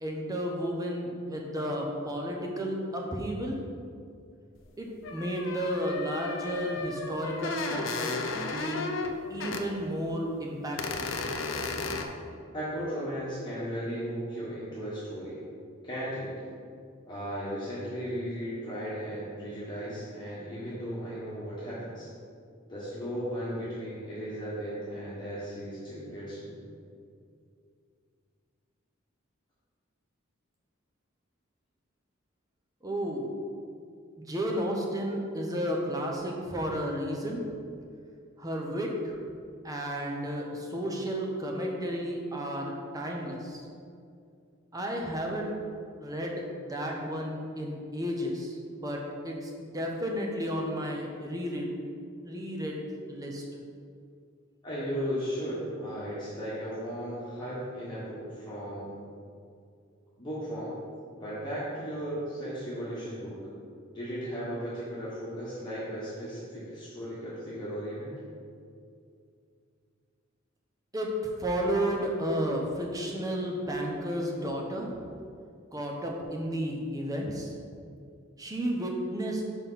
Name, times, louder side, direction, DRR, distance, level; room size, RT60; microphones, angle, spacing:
voice 1, 0.0-3.6 4.8-8.2 8.5-8.9 9.3-11.1 32.8-33.3 34.2-37.4 38.4-39.2 39.6-43.6 44.7-45.6 46.0-51.7 52.2-53.4 70.9-71.1 71.4-75.0 75.7-77.5 78.4-79.4, equal, 20° right, 0 dB, 0.8 m, -32 dB
sound 1, 4.6-4.7 5.0-9.6 10.1-10.2 10.8-12.0, left 3 dB, 70° left, 0.6 m, -34 dB
voice 2, 12.5-15.4 15.8-16.3 17.1-22.1 22.7-26.6 54.6-58.9 60.2-60.7 61.2-63.4 63.9-68.2, equal, 20° left, -10 dB, 1.4 m, -36 dB
5.4 x 4.5 x 5.7 m, 2.3 s
head